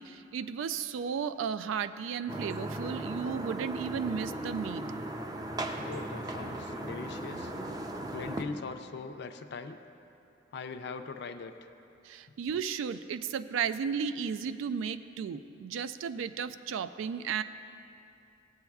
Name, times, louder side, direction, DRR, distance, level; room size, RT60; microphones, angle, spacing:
voice 1, 0.0-4.8 12.1-17.4, right 7 dB, 85° right, 12 dB, 0.3 m, -34 dB
sound 1, 2.3-8.4, right 1 dB, 20° right, 0.4 m, -37 dB
voice 2, 5.8-7.5 8.1-9.8 10.5-11.5, left 4 dB, 60° left, 6 dB, 0.4 m, -41 dB
15.5 x 7.8 x 2.3 m, 2.7 s
head